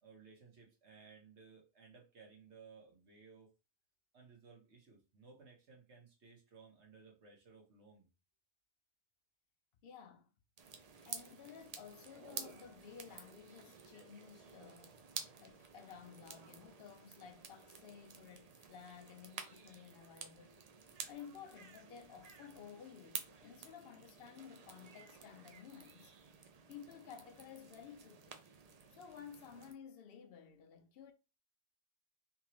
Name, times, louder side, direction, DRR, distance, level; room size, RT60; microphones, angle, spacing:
voice 1, 0.0-3.5 4.1-8.1, right 5 dB, 80° right, 1.5 m, -60 dB
voice 2, 9.8-10.3 11.0-20.6 21.1-26.1 26.7-28.4 28.9-31.1, left 7 dB, 65° left, 0.7 m, -54 dB
sound 1, 10.6-29.7, right 5 dB, 50° right, 0.5 m, -52 dB
3.5 x 2.9 x 3.1 m
omnidirectional pair, 1.1 m